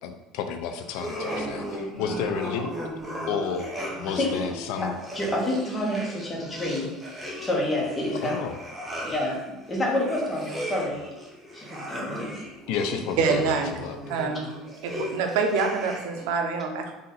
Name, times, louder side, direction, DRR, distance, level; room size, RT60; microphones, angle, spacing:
voice 1, 0.0-2.7 3.3-3.7 4.0-4.9 8.2-8.6 12.7-13.5 13.8-14.0, left 6 dB, 75° left, 6 dB, 0.4 m, -31 dB
sound 1, 0.9-16.3, equal, 10° right, 0.8 m, -37 dB
voice 2, 5.1-6.9 7.4-8.4 9.0-9.4 9.7-11.0 11.5-12.3, left 1 dB, 15° left, -2 dB, 1.0 m, -28 dB
voice 3, 13.2-13.8 14.1-14.6 14.8-16.9, right 4 dB, 80° right, 4 dB, 0.6 m, -26 dB
4.0 x 2.5 x 4.0 m, 1.0 s
cardioid pair, 150°, 0 cm